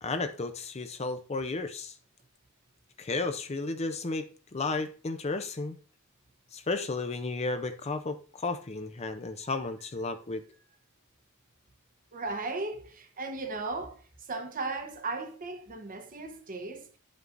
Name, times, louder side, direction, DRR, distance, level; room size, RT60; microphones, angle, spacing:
voice 1, 0.0-1.9 3.0-5.8 6.5-10.4, left 3 dB, 30° left, 0.5 m, -33 dB
voice 2, 12.1-16.9, right 3 dB, 40° right, 0.8 m, -36 dB
11.0 x 5.3 x 2.5 m
head